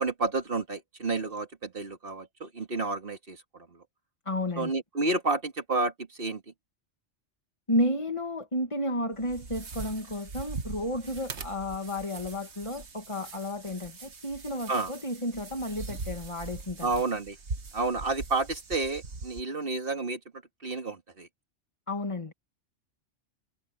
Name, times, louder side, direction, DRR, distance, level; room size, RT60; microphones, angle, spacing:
voice 1, 0.0-3.8 4.6-6.4 14.7-14.9 16.8-17.4 17.7-20.2 20.6-21.3, right 3 dB, 50° right, 2.5 m, -30 dB
voice 2, 4.3-4.7 7.7-16.9 21.9-22.3, left 1 dB, 25° left, 2.1 m, -32 dB
sound 1, 9.1-19.4, right 4 dB, 70° right, 1.9 m, -41 dB
omnidirectional pair, 1.2 m